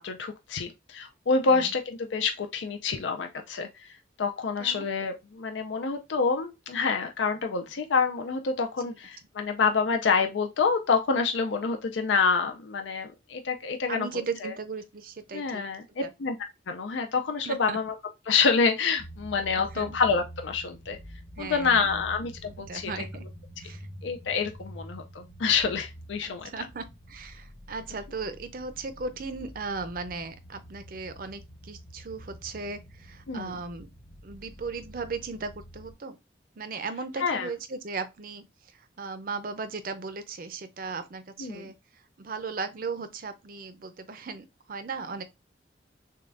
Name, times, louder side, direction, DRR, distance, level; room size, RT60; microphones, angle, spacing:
voice 1, 0.0-3.9 4.2-14.1 14.4-14.5 15.3-16.4 16.7-17.9 18.3-21.0 21.4-22.9 24.0-26.5 33.3-33.6 37.2-37.5 41.4-41.7, left 5 dB, 85° left, 0.5 m, -27 dB
voice 2, 13.9-15.6 16.0-16.1 17.5-17.8 19.5-20.0 21.4-22.1 22.7-23.3 23.6-23.9 26.2-33.9 34.2-36.2 36.6-38.5 38.7-45.2, right 4 dB, 50° right, 0.5 m, -37 dB
sound 1, 19.0-35.9, equal, 55° left, 1.6 m, -47 dB
6.4 x 2.3 x 2.5 m
head